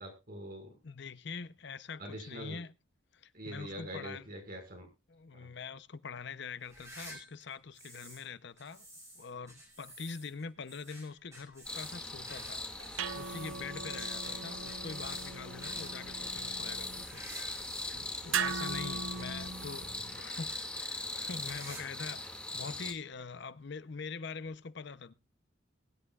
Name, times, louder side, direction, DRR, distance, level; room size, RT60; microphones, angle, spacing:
voice 1, 0.0-0.8 2.0-2.6 3.3-4.9 5.3-5.5, equal, 45° right, 5.6 m, -44 dB
voice 2, 0.8-2.7 3.2-4.3 5.1-8.9 9.2-25.1, left 5 dB, 60° left, 0.7 m, -44 dB
sound 1, 6.6-8.3 8.6-18.0 18.3-20.1 20.5-20.7 21.1-22.0 22.2-22.3 23.1-23.2 24.4-24.5, equal, 15° right, 5.9 m, -52 dB
sound 2, 11.6-22.9, left 2 dB, 5° left, 2.2 m, -41 dB
sound 3, 12.2-20.2, right 6 dB, 75° right, 0.7 m, -40 dB
22.0 x 10.0 x 2.4 m
head